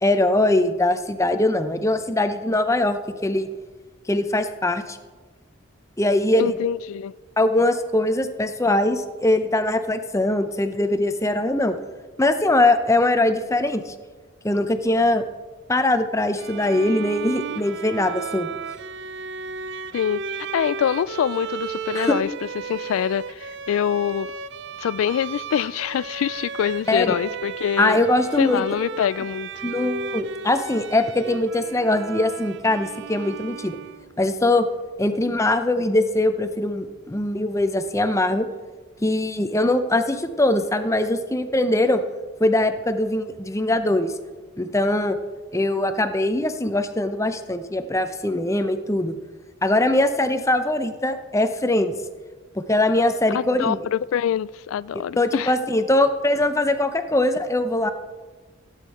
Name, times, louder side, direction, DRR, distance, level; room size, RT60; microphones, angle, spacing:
voice 1, 0.0-3.5 4.1-5.0 6.0-6.6 7.4-11.7 12.2-13.9 14.4-15.2 15.7-18.5 21.9-22.2 26.9-27.2 27.8-28.6 29.6-33.8 34.2-34.7 35.0-38.5 39.0-42.0 42.4-44.1 44.6-45.2 45.5-49.2 49.6-51.9 52.5-53.8 55.2-57.9, left 1 dB, 15° left, 0.7 m, -21 dB
voice 2, 6.4-7.1 19.9-22.3 22.6-24.3 24.8-28.0 28.4-29.5 53.3-55.5, left 9 dB, 85° left, 0.3 m, -25 dB
Bowed string instrument, 16.4-34.2, right 5 dB, 60° right, 0.4 m, -34 dB
15.5 x 8.3 x 4.2 m
head